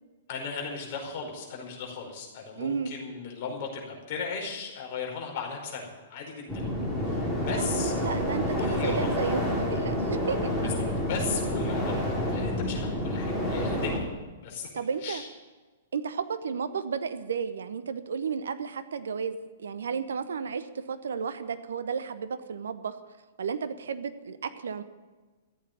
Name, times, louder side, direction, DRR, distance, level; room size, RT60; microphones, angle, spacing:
voice 1, 0.3-6.5 7.0-7.9 8.6-9.1 10.6-10.7 11.0-14.1 14.4-14.7 15.0-15.3, left 5 dB, 45° left, 0 dB, 5.0 m, -36 dB
voice 2, 2.6-2.9 7.5-10.6 14.7-15.2 15.9-23.0 23.4-24.8, right 6 dB, 65° right, 12 dB, 0.9 m, -33 dB
sound 1, 6.5-14.0, left 1 dB, 5° right, 5.1 m, -29 dB
14.5 x 8.5 x 9.4 m, 1.3 s
figure-of-eight pair, 110°, 0 cm